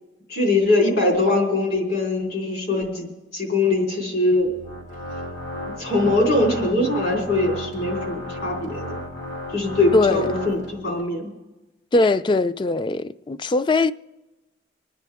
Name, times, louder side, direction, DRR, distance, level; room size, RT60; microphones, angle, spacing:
voice 1, 0.3-4.5 5.8-9.0 9.5-11.3, left 2 dB, 65° left, 3.9 m, -22 dB
Organ, 4.4-11.0, left 1 dB, 80° left, 2.8 m, -34 dB
voice 2, 9.9-10.3 11.9-13.9, left 3 dB, 25° left, 0.3 m, -20 dB
26.5 x 10.0 x 3.5 m
head